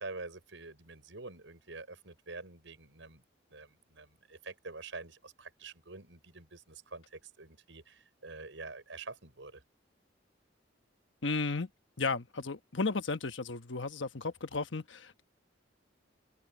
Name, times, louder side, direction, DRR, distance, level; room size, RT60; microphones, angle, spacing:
voice 1, 0.0-3.2 3.5-9.6, right 3 dB, 80° right, 5.9 m, -47 dB
voice 2, 11.2-11.7 12.0-15.2, left 3 dB, 75° left, 1.2 m, -34 dB
open air
head